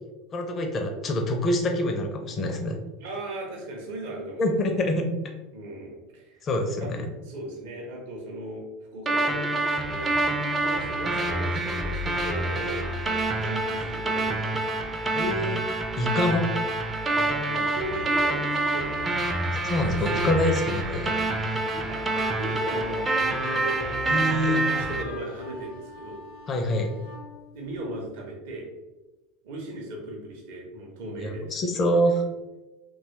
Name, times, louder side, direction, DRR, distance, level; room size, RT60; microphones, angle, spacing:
voice 1, 0.3-2.8 4.4-5.0 6.4-7.0 15.1-15.6 16.0-16.5 19.6-21.1 24.1-24.6 26.5-26.9 31.2-32.1, left 1 dB, 35° left, 3 dB, 0.5 m, -25 dB
voice 2, 3.0-4.8 5.5-6.4 6.8-10.1 10.6-12.9 13.4-14.9 17.1-18.9 20.0-20.5 21.7-22.0 22.4-23.8 24.5-26.2 27.5-28.7 29.4-31.9, right 1 dB, 60° right, -1 dB, 0.7 m, -38 dB
sound 1, 9.1-25.0, right 2 dB, 20° right, 0.4 m, -27 dB
sound 2, 18.3-28.1, left 2 dB, 65° left, 0.8 m, -40 dB
2.9 x 2.3 x 2.8 m, 1.1 s
hypercardioid pair, 80°, 0 cm